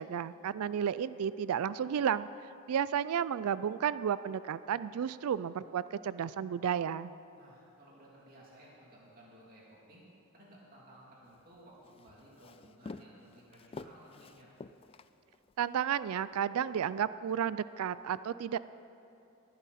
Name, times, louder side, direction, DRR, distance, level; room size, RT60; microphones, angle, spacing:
voice 1, 0.0-2.3 2.7-7.1 15.6-18.6, right 8 dB, 80° right, 16 dB, 0.3 m, -32 dB
voice 2, 7.3-10.1 10.3-14.5, right 1 dB, 40° right, -5 dB, 2.9 m, -57 dB
Walk footsteps, 11.3-15.6, left 3 dB, 25° left, 0.3 m, -49 dB
19.5 x 12.0 x 4.2 m, 2.7 s
head